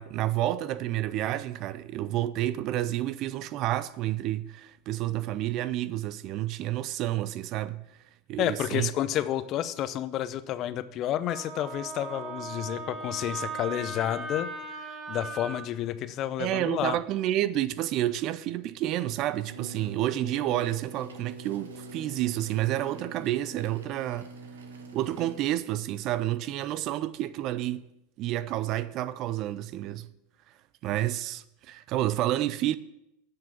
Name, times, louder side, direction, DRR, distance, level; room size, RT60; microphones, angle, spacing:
voice 1, 0.0-7.8 8.3-8.9 16.4-24.3 24.9-27.9 28.2-30.1 30.8-32.8, right 14 dB, 45° right, 0.5 m, -29 dB
voice 2, 8.4-17.0, left 11 dB, 45° left, 0.7 m, -30 dB
Wind instrument woodwind instrument, 11.3-15.7, right 3 dB, 20° right, 2.8 m, -38 dB
sound 1, 19.5-25.4, right 2 dB, 80° right, 1.3 m, -44 dB
9.6 x 6.8 x 7.3 m
hypercardioid pair, 90°, 0 cm